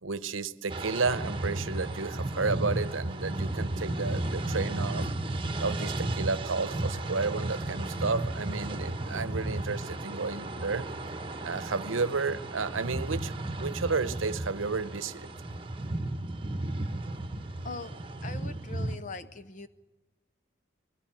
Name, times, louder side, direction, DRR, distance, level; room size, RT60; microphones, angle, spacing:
voice 1, 0.0-5.1 5.6-10.9 11.4-15.3, right 4 dB, 85° right, 15 dB, 0.9 m, -32 dB
sound 1, 0.7-19.0, right 2 dB, 25° right, 1.1 m, -34 dB
voice 2, 17.6-19.7, left 4 dB, 40° left, 13 dB, 0.7 m, -41 dB
22.5 x 18.0 x 9.3 m, 1.2 s
head